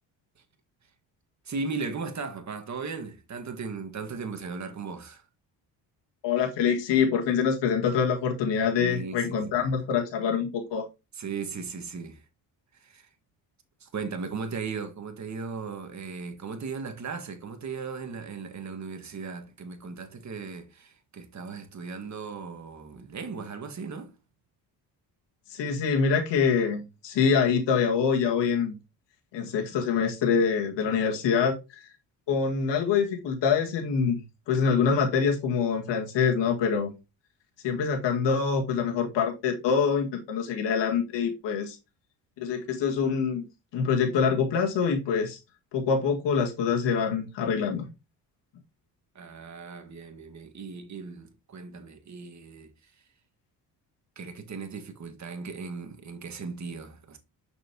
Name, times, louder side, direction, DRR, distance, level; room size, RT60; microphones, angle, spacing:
voice 1, 1.4-5.2 8.8-9.7 11.1-12.2 12.7-13.1 13.8-24.1 49.1-52.9 54.1-57.2, right 4 dB, 40° right, 1.7 m, -37 dB
voice 2, 6.2-10.9 25.5-28.8 29.3-31.8 32.3-36.9 37.6-41.8 42.4-43.5 43.7-45.4 45.7-47.9, left 6 dB, 75° left, 1.9 m, -25 dB
6.6 x 6.1 x 2.9 m
cardioid pair, 80°, 43 cm